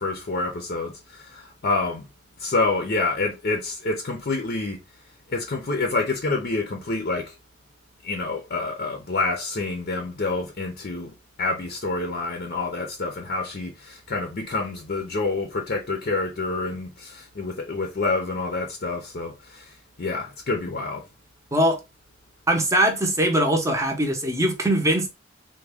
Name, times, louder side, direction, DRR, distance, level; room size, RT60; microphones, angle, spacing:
voice 1, 0.0-2.0 2.4-4.8 5.3-7.3 8.0-11.1 11.4-19.6 20.0-21.0, left 3 dB, 50° left, 0.6 m, -27 dB
voice 2, 22.5-25.1, right 1 dB, 15° right, 0.7 m, -21 dB
3.5 x 2.2 x 3.4 m
head